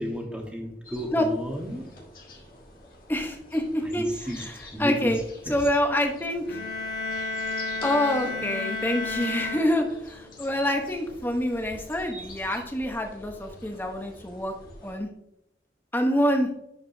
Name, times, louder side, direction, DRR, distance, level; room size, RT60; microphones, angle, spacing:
voice 1, 0.0-1.9 3.8-4.4 4.7-5.1 5.4-5.6, equal, 5° right, 0 dB, 1.2 m, -33 dB
sound 1, 0.8-15.0, left 1 dB, 50° left, 1.6 m, -47 dB
voice 2, 3.1-4.1 4.4-4.5 4.8-5.2 5.5-6.6 7.8-14.5 14.8-15.1 15.9-16.5, left 1 dB, 10° left, 3 dB, 0.9 m, -26 dB
sound 2, 6.4-10.3, left 3 dB, 75° left, 1.9 m, -32 dB
10.5 x 4.9 x 2.7 m, 0.79 s
head